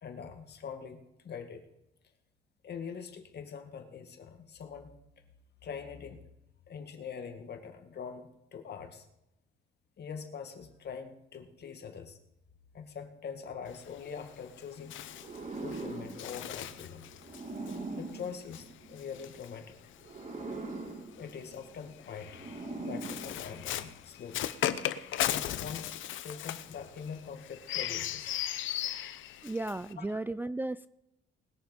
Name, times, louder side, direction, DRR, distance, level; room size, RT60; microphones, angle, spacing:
voice 1, 0.0-1.6 2.6-5.0 5.6-6.3 6.7-9.1 10.0-12.2 12.7-15.0 15.6-17.1 18.0-19.8 21.2-22.4 22.9-24.4 25.3-26.0 26.2-28.3 30.0-30.2, left 6 dB, 55° left, 6 dB, 2.0 m, -43 dB
Bird, 13.7-20.2 21.1-29.9, left 12 dB, 80° left, 0.8 m, -38 dB
sound 1, 15.1-19.3 20.0-23.9, right 2 dB, 35° right, 2.2 m, -42 dB
voice 2, 29.4-30.9, right 2 dB, 10° right, 13 dB, 0.3 m, -35 dB
20.5 x 7.0 x 5.4 m, 0.88 s
cardioid pair, 90°, 20 cm